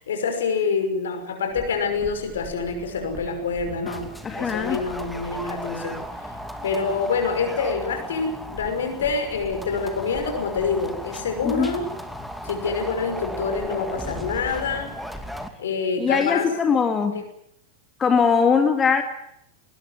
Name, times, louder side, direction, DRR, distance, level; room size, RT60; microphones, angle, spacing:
voice 1, 0.0-4.1 4.4-6.0 6.6-11.9 12.4-14.9 15.6-16.5 17.1-17.2, left 5 dB, 65° left, 7 dB, 5.8 m, -26 dB
sound 1, 1.5-15.5, equal, ahead, 2.7 m, -36 dB
voice 2, 4.2-4.8 11.4-11.7 16.0-17.2 18.0-19.0, left 6 dB, 20° left, 6 dB, 2.1 m, -21 dB
21.0 x 20.5 x 9.7 m, 0.74 s
figure-of-eight pair, 90°, 0 cm